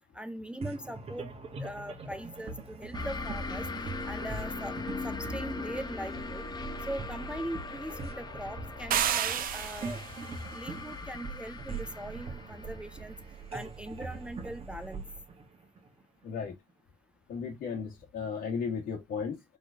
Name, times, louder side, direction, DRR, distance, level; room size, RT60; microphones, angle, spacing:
voice 1, 0.1-1.3 1.6-3.7 4.0-4.8 5.0-6.5 6.8-10.0 10.5-13.1 13.5-15.0, right 1 dB, 5° right, 0.4 m, -41 dB
sound 1, 0.6-16.2, right 4 dB, 35° right, 1.2 m, -42 dB
sound 2, 2.9-14.1, left 3 dB, 25° left, 0.9 m, -40 dB
sound 3, 8.9-10.2, right 9 dB, 55° right, 0.7 m, -30 dB
voice 2, 16.2-16.5 17.3-19.6, left 6 dB, 70° left, 1.6 m, -35 dB
4.7 x 3.8 x 2.7 m
cardioid pair, 110°, 17 cm